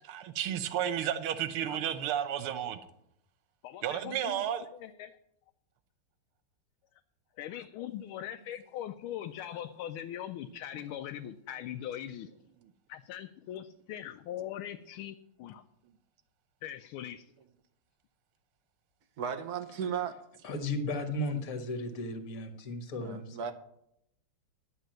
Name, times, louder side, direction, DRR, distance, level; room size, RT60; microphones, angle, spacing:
voice 1, 0.1-2.8 3.8-4.7, right 10 dB, 90° right, 1.8 m, -32 dB
voice 2, 3.6-4.5 4.8-5.2 7.4-12.3 12.9-15.6 16.6-17.3, left 11 dB, 80° left, 1.4 m, -41 dB
voice 3, 19.2-20.1 23.0-23.5, right 7 dB, 60° right, 1.1 m, -35 dB
voice 4, 20.4-23.4, left 1 dB, 45° left, 1.7 m, -35 dB
11.0 x 6.3 x 7.7 m
omnidirectional pair, 2.3 m